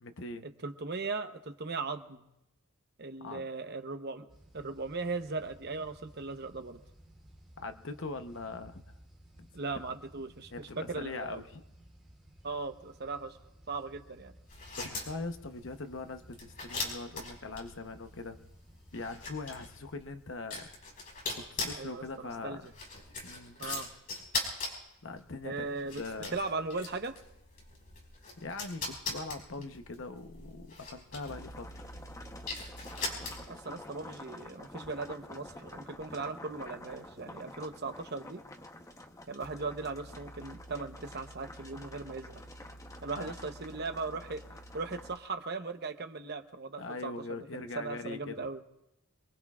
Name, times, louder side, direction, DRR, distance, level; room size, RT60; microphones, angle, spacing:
voice 1, 0.0-0.5 3.2-3.4 7.6-8.8 9.4-9.5 10.5-11.6 14.8-18.4 18.9-20.7 21.3-22.6 23.2-23.6 25.0-25.7 26.0-26.4 28.4-31.9 43.2-43.3 46.8-48.5, left 3 dB, 60° left, 8 dB, 0.9 m, -41 dB
voice 2, 0.6-2.3 3.0-4.3 4.5-6.8 9.5-11.4 12.4-13.4 13.7-14.3 21.8-22.6 23.6-23.9 25.4-26.0 26.3-27.2 33.5-38.4 39.3-42.4 43.0-44.4 44.7-47.1 47.5-48.6, right 3 dB, 50° right, 7 dB, 0.9 m, -38 dB
sound 1, 4.3-20.0, right 1 dB, 5° right, 3.9 m, -57 dB
sound 2, 14.5-33.7, left 3 dB, 40° left, 4.9 m, -41 dB
sound 3, 31.3-45.2, left 1 dB, 15° left, 0.8 m, -48 dB
27.0 x 21.5 x 2.4 m, 0.89 s
head